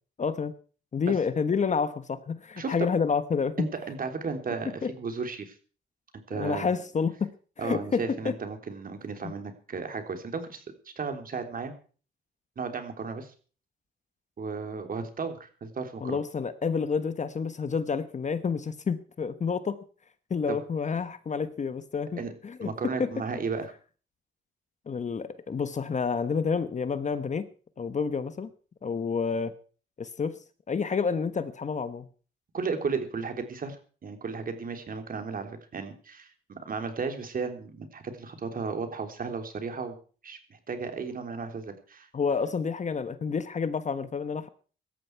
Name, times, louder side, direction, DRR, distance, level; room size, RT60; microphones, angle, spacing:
voice 1, 0.2-0.5 0.9-3.7 4.8-4.9 6.3-7.3 7.6-8.3 9.2-9.3 16.0-19.8 20.3-23.1 24.9-27.5 27.8-28.5 28.8-29.5 30.0-30.3 30.7-32.1 42.1-44.5, left 5 dB, 35° left, 12 dB, 1.2 m, -29 dB
voice 2, 2.6-2.9 3.6-5.5 6.1-6.7 7.6-11.7 12.6-13.3 14.4-16.2 20.5-20.6 22.2-22.3 22.6-23.7 32.5-40.0 40.2-42.1, right 5 dB, 45° right, 6 dB, 3.4 m, -34 dB
17.0 x 13.5 x 4.7 m, 0.41 s
cardioid pair, 90°, 20 cm